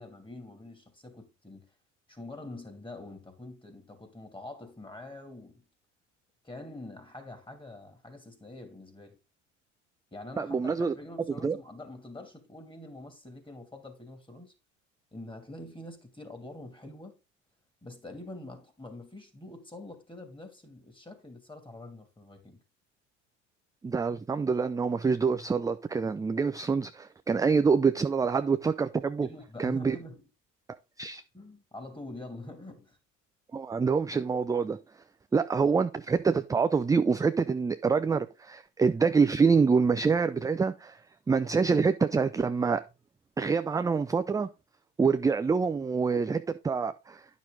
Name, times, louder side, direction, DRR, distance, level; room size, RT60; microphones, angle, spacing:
voice 1, 0.0-1.7 2.1-5.6 6.4-9.2 10.1-14.5 15.1-17.2 17.8-22.6 29.2-30.2 31.3-33.0, left 2 dB, 15° left, 2.6 m, -45 dB
voice 2, 10.4-10.9 11.4-11.6 23.8-29.3 29.6-30.0 31.0-31.2 33.5-34.8 35.3-41.0 41.3-42.8 43.4-44.5 45.0-47.3, right 5 dB, 10° right, 0.3 m, -26 dB
9.6 x 6.1 x 3.8 m
hypercardioid pair, 70°, 37 cm